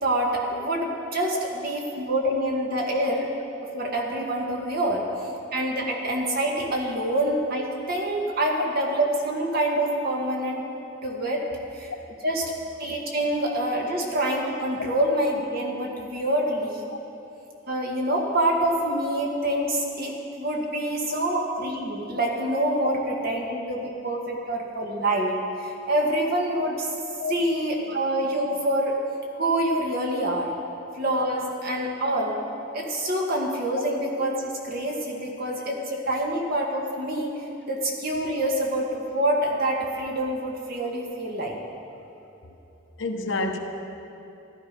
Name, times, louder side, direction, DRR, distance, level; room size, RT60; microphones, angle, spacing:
voice 1, 0.0-3.3 3.6-5.0 5.5-10.6 11.0-11.4 11.7-11.9 12.2-12.5 12.8-16.9 17.7-23.0 23.2-26.9 27.3-29.0 29.4-30.5 31.0-32.4 32.7-37.3 37.7-41.6, right 1 dB, 50° right, -1 dB, 1.9 m, -26 dB
voice 2, 43.0-43.6, left 3 dB, 70° left, 3 dB, 1.2 m, -29 dB
14.5 x 12.5 x 5.3 m, 2.9 s
head